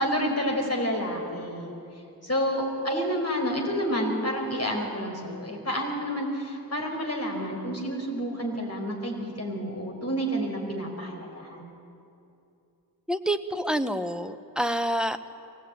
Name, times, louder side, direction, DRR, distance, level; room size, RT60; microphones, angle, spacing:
voice 1, 0.0-1.7 2.2-11.7, equal, 40° left, 0 dB, 4.7 m, -29 dB
voice 2, 13.1-15.3, right 1 dB, ahead, 9 dB, 0.9 m, -28 dB
23.0 x 17.5 x 9.3 m, 2.6 s
wide cardioid pair, 75°, 37 cm